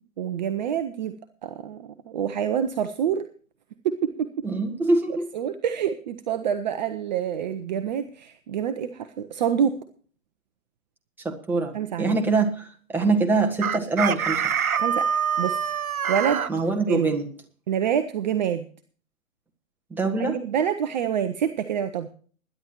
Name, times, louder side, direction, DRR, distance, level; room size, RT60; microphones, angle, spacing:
voice 1, 0.2-1.1 1.4-3.3 3.8-4.3 5.3-9.8 11.7-12.2 14.8-15.6 16.1-16.4 16.9-17.1 17.7-18.7 20.2-22.1, right 8 dB, 35° right, 9 dB, 0.8 m, -27 dB
voice 2, 4.4-5.3 11.2-14.4 16.5-17.3 19.9-20.4, right 3 dB, 5° right, 1 dB, 1.5 m, -24 dB
Chicken rooster, 13.6-16.5, right 7 dB, 80° right, 0.9 m, -25 dB
21.0 x 10.5 x 3.0 m, 0.44 s
figure-of-eight pair, 130°, 42 cm